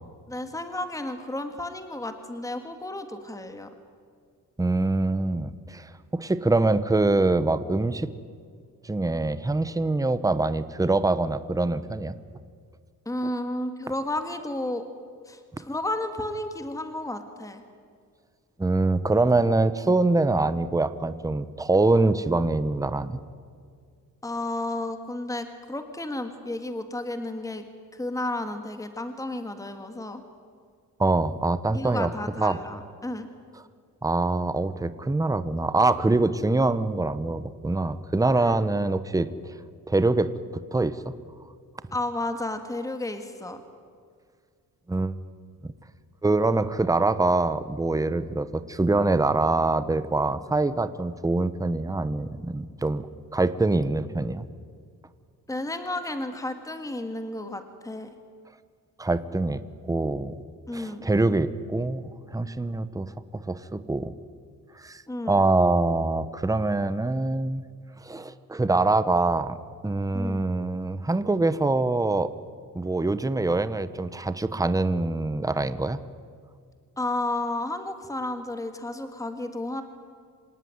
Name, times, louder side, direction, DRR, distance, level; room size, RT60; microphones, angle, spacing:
voice 1, 0.3-3.7 13.1-14.8 15.3-17.6 24.2-27.7 27.9-30.2 31.7-33.3 38.4-38.6 41.9-43.6 55.5-58.1 60.7-61.0 65.1-65.4 70.1-70.4 77.0-79.8, left 1 dB, 10° left, 7 dB, 1.8 m, -32 dB
voice 2, 4.6-8.1 8.8-12.1 18.6-23.2 31.0-32.1 32.4-32.6 34.0-39.5 39.9-41.1 44.9-45.2 45.6-45.7 46.2-53.1 53.3-54.4 59.0-59.6 59.9-60.4 60.7-64.1 64.8-67.6 68.0-69.6 69.8-72.3 72.7-76.0, right 2 dB, 10° right, 13 dB, 1.0 m, -24 dB
26.5 x 18.0 x 9.6 m, 2.1 s
cardioid pair, 120°, 34 cm